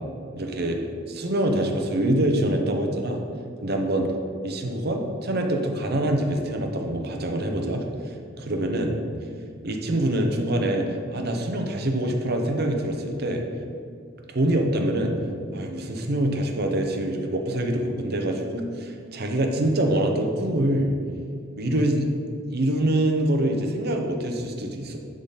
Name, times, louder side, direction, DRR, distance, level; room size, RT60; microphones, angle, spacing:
voice 1, 0.4-3.2 3.6-4.1 4.4-7.8 8.4-8.9 9.6-13.4 14.3-15.1 15.5-20.9 21.6-22.1 22.5-25.0, right 1 dB, 55° right, 3 dB, 0.9 m, -25 dB
10.0 x 3.9 x 4.1 m, 2.4 s
head